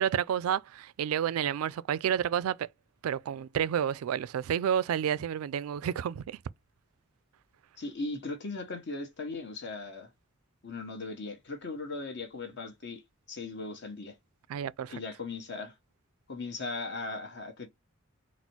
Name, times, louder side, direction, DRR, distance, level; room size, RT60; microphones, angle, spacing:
voice 1, 0.0-2.7 3.0-6.4 14.5-14.9, right 9 dB, 85° right, 0.3 m, -30 dB
voice 2, 7.8-10.1 10.6-13.0 13.3-14.2 14.9-15.8 16.3-17.7, left 3 dB, 55° left, 1.0 m, -38 dB
4.1 x 2.1 x 4.5 m
head